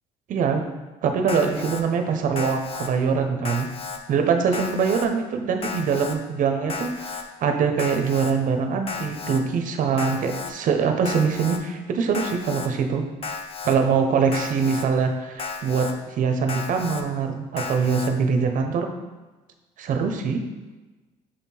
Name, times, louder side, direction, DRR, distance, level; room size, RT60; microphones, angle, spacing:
voice 1, 0.3-0.6 1.0-3.7 4.1-13.0 13.6-18.9 19.8-20.4, right 5 dB, 60° right, 5 dB, 0.8 m, -23 dB
Alarm, 1.3-1.8 2.4-2.9 3.4-4.0 4.5-5.1 5.6-6.2 6.7-7.2 7.8-8.3 8.9-9.4 10.0-10.5 11.1-11.6 12.1-12.7 13.2-13.8 14.3-14.9 15.4-15.9 16.5-17.0 17.6-18.1, left 5 dB, 40° left, 0.7 m, -33 dB
6.7 x 3.6 x 4.4 m, 1.2 s
supercardioid pair, 85°, 16 cm